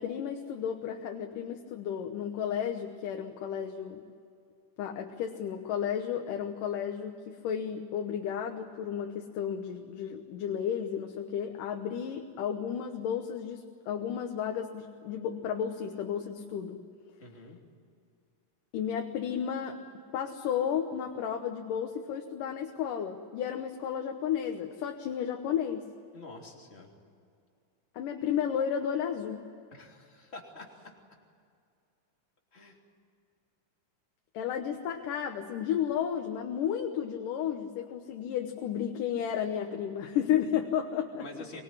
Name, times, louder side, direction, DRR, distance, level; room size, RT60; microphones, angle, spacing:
voice 1, 0.0-4.0 4.8-16.8 18.7-19.8 20.1-25.9 27.9-29.5 34.3-41.2, left 8 dB, 85° left, 3 dB, 2.8 m, -33 dB
voice 2, 17.2-17.6 26.1-26.9 29.7-30.9 32.5-32.8 41.2-41.6, left 2 dB, 20° left, 0 dB, 3.3 m, -46 dB
24.5 x 20.5 x 9.8 m, 2.3 s
omnidirectional pair, 3.7 m